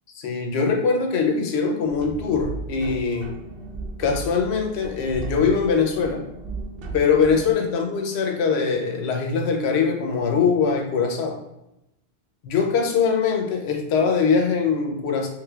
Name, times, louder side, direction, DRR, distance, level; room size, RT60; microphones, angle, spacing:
voice 1, 0.2-3.4 4.0-6.2 6.9-11.4 12.4-15.3, left 5 dB, 80° left, 3 dB, 0.9 m, -22 dB
sound 1, 1.9-7.5, right 3 dB, 65° right, 0.7 m, -35 dB
3.3 x 3.2 x 2.3 m, 0.88 s
omnidirectional pair, 1.1 m